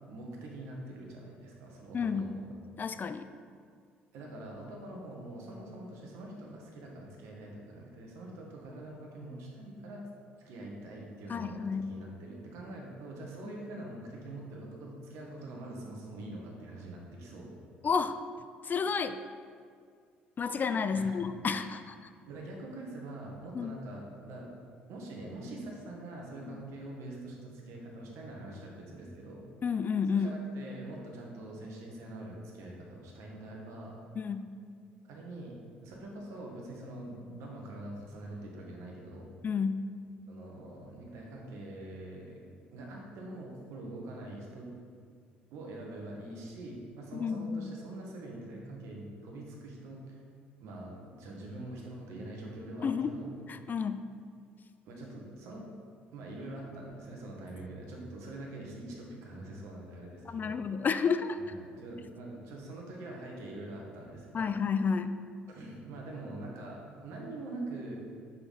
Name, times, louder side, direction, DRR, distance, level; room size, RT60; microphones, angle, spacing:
voice 1, 0.1-2.5 4.1-10.0 10.4-17.5 20.9-21.2 22.3-24.5 24.9-29.5 30.1-34.0 35.0-39.3 40.3-42.4 42.7-44.7 45.5-50.2 50.6-53.3 54.8-55.7 56.1-60.6 61.4-64.5 65.5-67.9, right 1 dB, 65° right, -1 dB, 1.4 m, -44 dB
voice 2, 1.9-2.3 2.8-3.3 11.3-11.9 13.4-13.5 17.8-18.2 18.6-19.2 20.4-21.9 23.5-23.7 26.5-26.6 29.6-30.3 34.2-34.5 39.4-39.8 47.1-47.7 52.8-53.1 53.5-54.0 60.3-61.4 64.3-65.2, left 5 dB, 35° left, 11 dB, 0.3 m, -31 dB
5.7 x 5.7 x 4.2 m, 2.2 s
hypercardioid pair, 55°, 5 cm